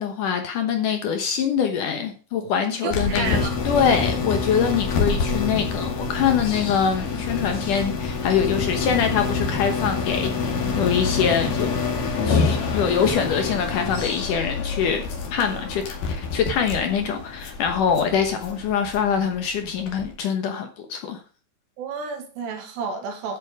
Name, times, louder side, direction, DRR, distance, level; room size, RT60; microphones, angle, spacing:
voice 1, 0.0-11.7 12.3-15.0 15.3-21.2, left 7 dB, 75° left, 6 dB, 1.9 m, -24 dB
voice 2, 2.8-3.6 15.5-15.7 21.8-23.4, right 5 dB, 70° right, 5 dB, 3.5 m, -31 dB
sound 1, 2.9-20.1, left 4 dB, 50° left, 3.3 m, -27 dB
10.5 x 8.4 x 4.9 m, 0.38 s
omnidirectional pair, 5.4 m